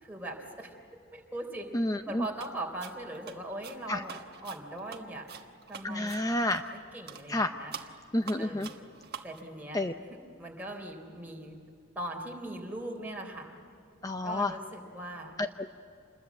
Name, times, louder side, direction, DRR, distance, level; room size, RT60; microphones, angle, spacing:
voice 1, 0.0-0.7 1.1-1.7 2.1-5.3 5.7-6.4 6.7-7.8 8.4-8.9 9.2-9.8 10.4-11.6 12.0-13.5 14.2-15.3, right 1 dB, 10° right, 0 dB, 3.7 m, -40 dB
voice 2, 1.7-2.3 3.9-4.0 5.8-6.6 7.3-7.6 8.1-8.7 9.7-9.9 14.0-14.6 15.4-15.7, left 1 dB, 15° left, 7 dB, 0.6 m, -30 dB
sound 1, 2.4-2.5 2.8-6.8 7.1-7.3 7.7-9.4, right 7 dB, 50° right, 1.3 m, -46 dB
27.5 x 21.5 x 8.4 m, 2.6 s
head